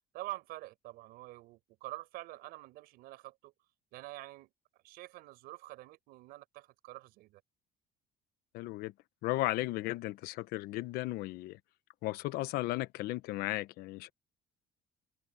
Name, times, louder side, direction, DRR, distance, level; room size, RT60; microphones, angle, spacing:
voice 1, 0.1-3.5 3.9-4.5 4.8-7.4, right 18 dB, 70° right, 5.6 m, -46 dB
voice 2, 8.5-8.9 9.2-11.6 12.0-14.1, left 17 dB, 70° left, 1.0 m, -35 dB
open air
cardioid pair, 160°, 16 cm